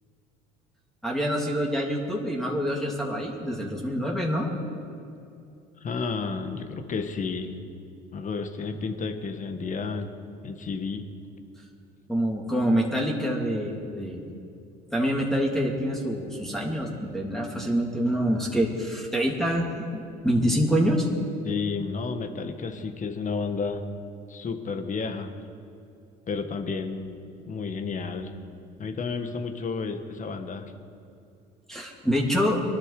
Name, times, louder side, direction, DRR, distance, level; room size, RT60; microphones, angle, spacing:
voice 1, 1.0-4.5 12.1-14.2 14.9-21.1 31.7-32.6, equal, ahead, -2 dB, 3.0 m, -26 dB
voice 2, 5.8-7.5 8.1-10.1 10.4-11.0 21.4-23.8 24.3-25.3 26.3-27.2 27.5-28.3 28.8-30.7, left 4 dB, 40° left, 7 dB, 1.8 m, -31 dB
23.0 x 12.0 x 5.0 m, 2.5 s
hypercardioid pair, 75°, 21 cm